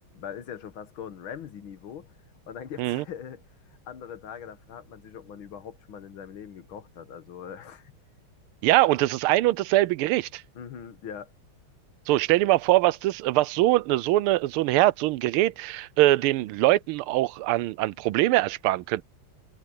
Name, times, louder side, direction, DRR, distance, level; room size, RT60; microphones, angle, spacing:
voice 1, 0.1-2.1 2.5-3.4 3.7-7.9 10.6-11.3, left 8 dB, 70° left, 2.0 m, -41 dB
voice 2, 8.6-10.4 12.1-19.0, right 17 dB, 85° right, 1.5 m, -22 dB
omnidirectional pair, 2.3 m